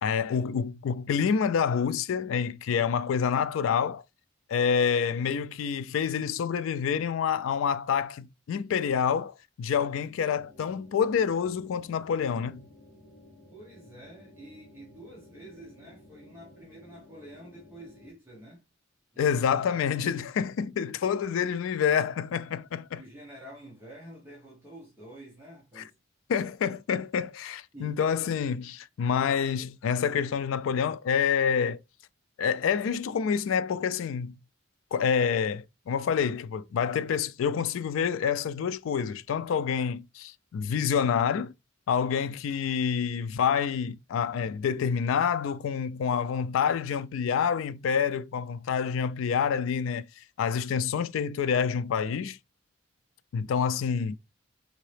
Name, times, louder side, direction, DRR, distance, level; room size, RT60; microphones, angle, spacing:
voice 1, 0.0-4.0 4.5-12.7 19.2-23.0 25.8-25.9 26.3-31.8 32.4-34.3 34.9-41.5 41.9-52.4 53.3-54.2, left 7 dB, 75° left, 0.3 m, -27 dB
sound 1, 10.4-18.1, left 1 dB, 55° left, 1.9 m, -54 dB
voice 2, 13.5-18.6 19.1-19.6 20.9-21.0 23.0-25.9 27.7-28.0, right 1 dB, 10° right, 0.9 m, -48 dB
3.9 x 2.7 x 3.2 m
head